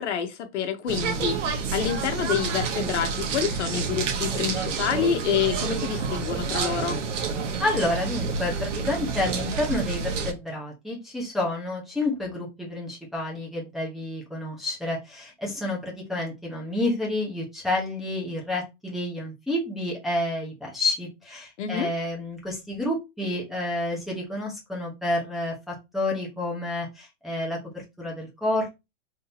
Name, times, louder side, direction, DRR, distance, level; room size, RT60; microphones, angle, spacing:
voice 1, 0.0-7.0 21.6-21.9, left 8 dB, 75° left, 1.1 m, -28 dB
sound 1, 0.9-10.3, right 5 dB, 85° right, 1.2 m, -29 dB
voice 2, 7.6-28.7, left 1 dB, ahead, 0.9 m, -29 dB
3.6 x 2.8 x 4.1 m
supercardioid pair, 165°, 36 cm